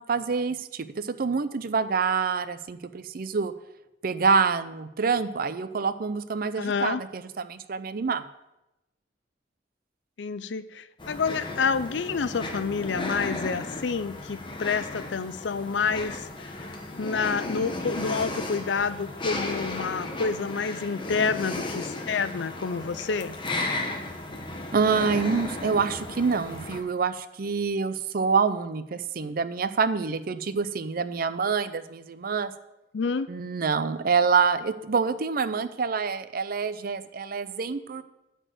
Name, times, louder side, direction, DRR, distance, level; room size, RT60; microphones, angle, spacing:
voice 1, 0.0-3.5 4.0-8.2 24.7-32.5 33.3-38.0, right 5 dB, 55° right, 13 dB, 0.5 m, -26 dB
voice 2, 6.6-7.0 10.2-16.2 17.0-23.4 32.9-33.3, left 5 dB, 80° left, 13 dB, 0.5 m, -28 dB
sound 1, 11.0-26.8, left 2 dB, 30° left, 1.1 m, -35 dB
10.0 x 4.5 x 7.5 m, 0.94 s
head